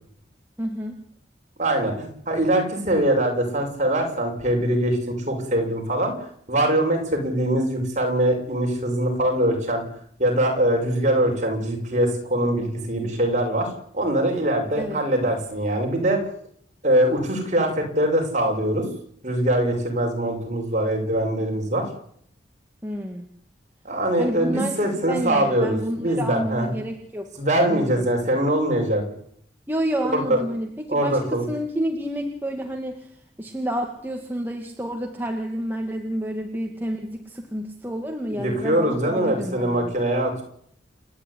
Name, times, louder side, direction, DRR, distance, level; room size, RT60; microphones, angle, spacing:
voice 1, 0.6-1.0 14.7-15.0 22.8-23.3 24.2-27.3 27.6-28.1 29.7-33.1 33.4-39.9, equal, 10° right, 1 dB, 2.1 m, -29 dB
voice 2, 1.6-9.8 10.2-13.7 13.9-16.3 16.8-18.8 19.2-21.8 23.8-26.7 27.4-29.0 30.1-30.4 30.9-31.5 38.3-40.4, right 1 dB, 40° right, 2 dB, 6.6 m, -23 dB
28.5 x 11.0 x 10.0 m, 0.64 s
head